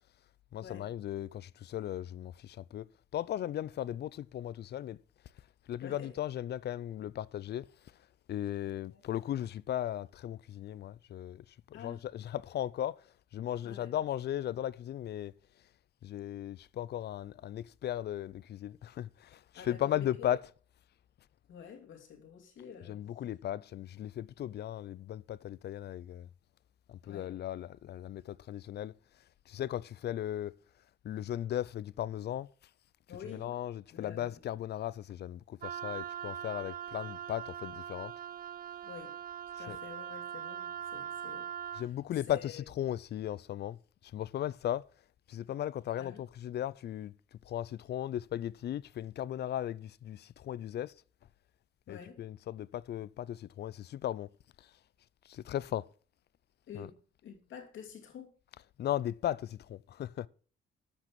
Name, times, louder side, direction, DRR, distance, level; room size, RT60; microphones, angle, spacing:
voice 1, 0.5-2.9 3.1-5.0 5.7-7.7 8.3-11.4 11.8-13.0 13.3-15.3 16.0-19.4 19.7-20.4 22.9-26.3 26.9-28.9 29.5-30.5 31.0-32.5 33.3-38.1 39.7-39.8 41.8-43.8 44.1-44.9 45.3-46.1 46.4-47.1 47.5-50.9 51.9-54.3 55.3-55.9 56.7-56.9 58.8-60.3, left 11 dB, 55° left, 0.5 m, -36 dB
voice 2, 5.8-6.2 8.9-9.0 11.7-12.0 13.6-13.9 19.6-20.4 21.5-23.0 27.0-27.4 33.1-33.6 33.9-34.4 38.8-39.2 39.6-41.9 42.1-42.6 46.0-46.2 51.9-52.2 56.7-58.4, left 7 dB, 75° left, 2.7 m, -49 dB
Wind instrument woodwind instrument, 35.6-41.9, right 9 dB, 45° right, 0.4 m, -41 dB
12.5 x 5.9 x 5.8 m
cardioid pair, 90°, 20 cm